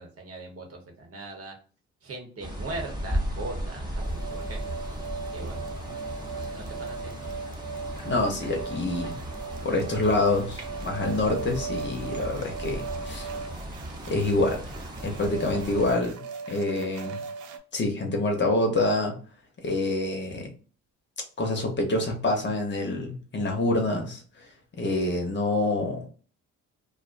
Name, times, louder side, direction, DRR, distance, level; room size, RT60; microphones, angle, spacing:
voice 1, 0.0-1.5 2.0-4.6 5.3-5.6 6.3-7.1, right 2 dB, 50° right, 2 dB, 1.0 m, -40 dB
sound 1, 2.4-15.9, right 1 dB, 15° right, 0.9 m, -36 dB
sound 2, 4.0-17.6, right 5 dB, 80° right, 0.5 m, -38 dB
voice 2, 8.0-9.1 9.6-13.3 14.1-14.7 15.0-16.2 16.5-17.2 17.7-19.2 19.6-20.5 21.4-24.2 24.8-26.0, left 2 dB, 35° left, 2 dB, 0.8 m, -26 dB
2.5 x 2.2 x 2.4 m, 0.39 s
cardioid pair, 90°, 30 cm